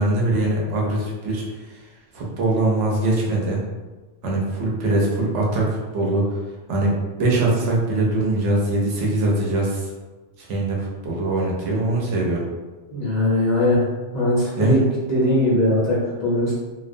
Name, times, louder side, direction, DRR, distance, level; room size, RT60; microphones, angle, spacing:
voice 1, 0.0-1.4 2.1-3.6 4.2-5.7 5.9-6.2 6.7-9.8 10.4-12.4 14.6-14.8, right 2 dB, 75° right, -3 dB, 0.9 m, -22 dB
voice 2, 12.9-13.8 14.1-14.8 15.1-16.5, left 1 dB, 50° left, -8 dB, 0.5 m, -20 dB
2.3 x 2.1 x 2.5 m, 1.3 s
omnidirectional pair, 1.2 m